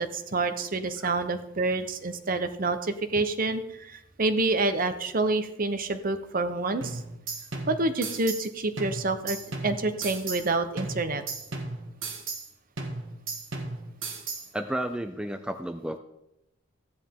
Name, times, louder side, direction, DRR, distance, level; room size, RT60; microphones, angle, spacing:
voice 1, 0.0-7.0 7.7-9.4 9.6-11.2, right 3 dB, 40° right, 10 dB, 0.8 m, -28 dB
sound 1, 6.8-8.5 8.8-10.5 10.8-12.5 12.8-14.5, right 3 dB, 65° right, 1.7 m, -36 dB
voice 2, 14.5-16.0, right 1 dB, 5° right, 7 dB, 0.4 m, -32 dB
14.5 x 9.7 x 3.7 m, 0.87 s
head